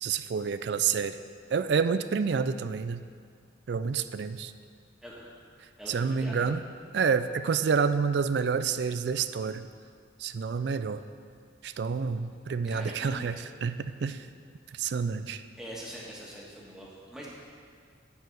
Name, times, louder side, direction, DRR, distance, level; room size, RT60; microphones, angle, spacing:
voice 1, 0.0-1.2 1.5-3.0 3.7-4.5 5.9-6.6 6.9-9.7 10.2-11.0 11.6-14.3 14.7-15.4, right 6 dB, 60° right, 12 dB, 0.3 m, -28 dB
voice 2, 5.0-5.4 5.8-6.5 8.7-8.9 12.7-13.4 15.6-17.3, equal, 5° right, -5 dB, 1.5 m, -43 dB
11.0 x 4.6 x 7.8 m, 2.1 s
head